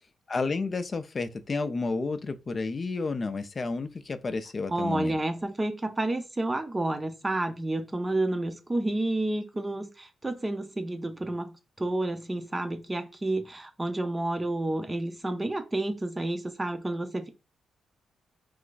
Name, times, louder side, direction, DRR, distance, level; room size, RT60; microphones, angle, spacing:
voice 1, 0.3-5.2, left 3 dB, 45° left, 0.4 m, -31 dB
voice 2, 4.7-11.5 11.8-17.3, right 2 dB, 25° right, 0.5 m, -30 dB
2.4 x 2.2 x 3.8 m
supercardioid pair, 50°, 0 cm